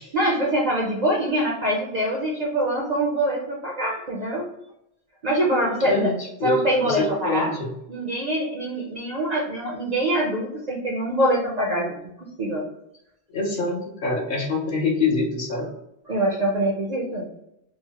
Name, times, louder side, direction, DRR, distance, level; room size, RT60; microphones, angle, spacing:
voice 1, 0.1-4.5 5.2-6.1 6.4-7.5 7.9-12.0 12.4-12.7 16.1-17.3, right 1 dB, 50° right, -3 dB, 0.5 m, -24 dB
voice 2, 5.8-6.1 6.4-6.6 6.8-7.7 13.3-15.7, left 3 dB, 55° left, -3 dB, 0.8 m, -25 dB
2.9 x 2.0 x 2.8 m, 0.82 s
omnidirectional pair, 1.1 m